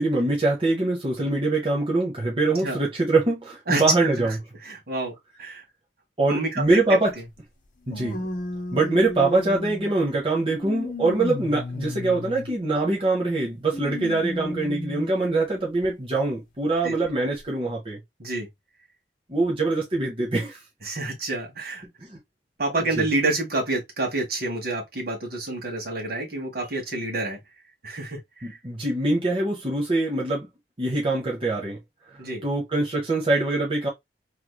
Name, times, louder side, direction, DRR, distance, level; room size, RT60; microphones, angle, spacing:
voice 1, 0.0-4.3 6.2-7.1 7.9-8.3 8.7-18.0 19.3-20.6 22.1-22.2 23.0-23.1 28.4-30.5 30.8-31.8 32.4-33.9, right 2 dB, 30° right, 1.0 m, -23 dB
voice 2, 4.6-5.1 5.4-5.6 6.3-6.6 16.8-16.9 18.2-18.5 20.8-21.8 22.6-27.4 27.8-28.6 32.2-32.4, right 2 dB, 60° right, 1.6 m, -28 dB
sound 1, 6.7-6.8 7.9-9.9 10.5-12.5 13.7-15.1 15.8-15.9 17.1-17.2, left 1 dB, 50° left, 0.9 m, -33 dB
3.3 x 3.3 x 2.2 m
head